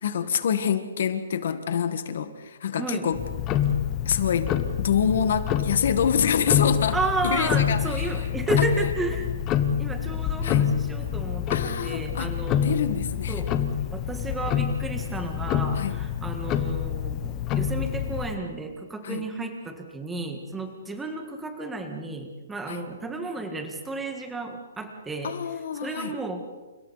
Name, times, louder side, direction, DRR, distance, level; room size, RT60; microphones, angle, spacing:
voice 1, 0.0-3.2 4.0-7.0 7.2-8.2 8.6-8.7 10.4-10.7 11.5-12.3 12.6-13.4 15.7-16.0 19.0-19.2 22.7-22.9 25.2-26.1, left 7 dB, 45° left, 9 dB, 1.7 m, -26 dB
voice 2, 2.8-3.1 6.9-9.3 9.8-12.8 13.3-13.6 13.9-25.4 25.8-26.6, right 3 dB, 5° right, 5 dB, 1.7 m, -32 dB
Tick-tock, 3.1-18.4, left 9 dB, 15° left, 1.0 m, -27 dB
30.0 x 29.5 x 4.2 m, 1.2 s
hypercardioid pair, 180°, 0 cm